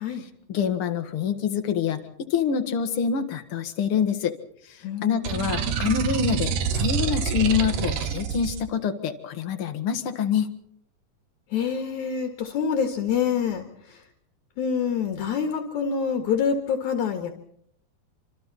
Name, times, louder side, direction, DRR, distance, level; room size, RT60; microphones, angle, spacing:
voice 1, 0.5-2.0 2.3-4.3 4.7-10.5, left 7 dB, 50° left, 7 dB, 2.1 m, -26 dB
voice 2, 4.8-5.5 11.5-14.0 14.6-17.3, left 7 dB, 65° left, 4 dB, 3.0 m, -26 dB
sound 1, 5.2-8.6, right 7 dB, 80° right, 2.8 m, -27 dB
27.0 x 26.0 x 4.2 m, 0.68 s
omnidirectional pair, 3.7 m